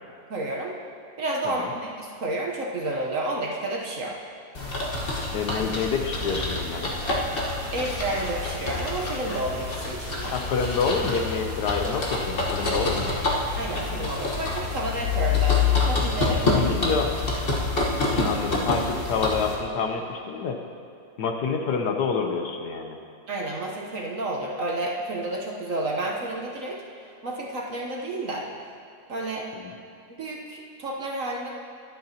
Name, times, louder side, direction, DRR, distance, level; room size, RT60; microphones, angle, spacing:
voice 1, 0.3-0.7 1.2-4.2 7.7-10.3 13.6-16.7 23.3-28.5 29.1-29.5 30.1-31.6, right 2 dB, 50° right, -1 dB, 1.1 m, -31 dB
sound 1, 4.5-19.5, left 3 dB, 35° left, 1.3 m, -27 dB
voice 2, 5.3-6.9 10.3-13.1 16.5-17.1 18.1-20.6 21.2-23.0, left 5 dB, 65° left, 4 dB, 1.3 m, -27 dB
21.5 x 7.9 x 2.8 m, 2.6 s
omnidirectional pair, 2.1 m